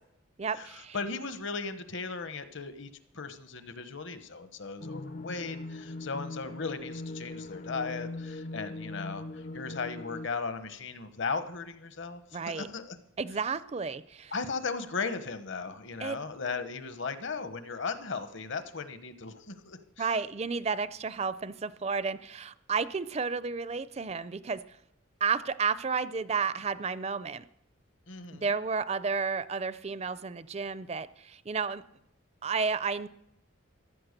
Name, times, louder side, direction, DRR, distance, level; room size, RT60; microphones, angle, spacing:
voice 1, 0.4-1.0 12.3-12.7 13.2-14.3 16.0-16.2 20.0-24.8 25.2-27.4 28.3-31.8 32.4-33.1, right 5 dB, 30° right, 15 dB, 0.4 m, -32 dB
voice 2, 0.9-12.9 14.3-20.1 28.1-28.4, left 4 dB, 65° left, 10 dB, 1.2 m, -37 dB
sound 1, 4.8-10.3, left 2 dB, 35° left, 0.5 m, -40 dB
15.0 x 11.0 x 6.7 m, 0.76 s
head